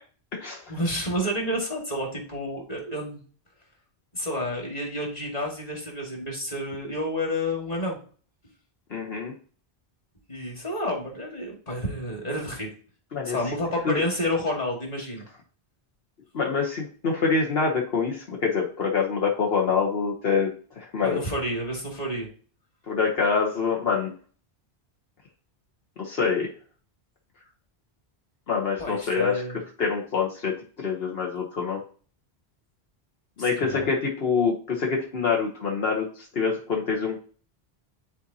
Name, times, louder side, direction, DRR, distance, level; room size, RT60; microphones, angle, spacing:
voice 1, 0.7-3.2 4.1-8.0 10.3-12.7 13.3-15.3 21.0-22.3 28.8-29.6 33.4-33.9, left 1 dB, 40° left, 0 dB, 1.9 m, -30 dB
voice 2, 8.9-9.3 13.1-13.6 13.8-14.0 16.3-21.2 22.9-24.1 26.0-26.5 28.5-29.4 29.8-31.8 33.4-37.2, left 5 dB, 70° left, -1 dB, 1.2 m, -26 dB
10.0 x 4.1 x 2.7 m, 0.41 s
omnidirectional pair, 1.1 m